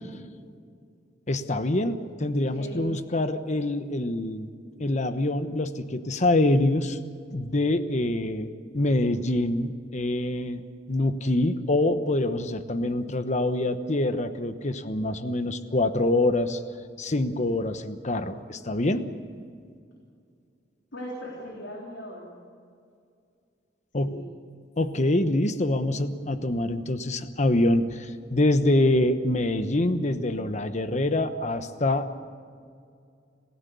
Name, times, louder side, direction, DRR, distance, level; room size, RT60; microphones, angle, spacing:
voice 1, 1.3-4.5 4.8-7.0 7.3-16.6 17.0-19.1 23.9-24.1 24.8-32.2, left 1 dB, 40° left, 10 dB, 1.1 m, -25 dB
voice 2, 2.5-3.0 20.9-22.4 24.0-24.3, equal, 90° left, -2 dB, 3.8 m, -38 dB
27.5 x 16.0 x 6.9 m, 2.3 s
head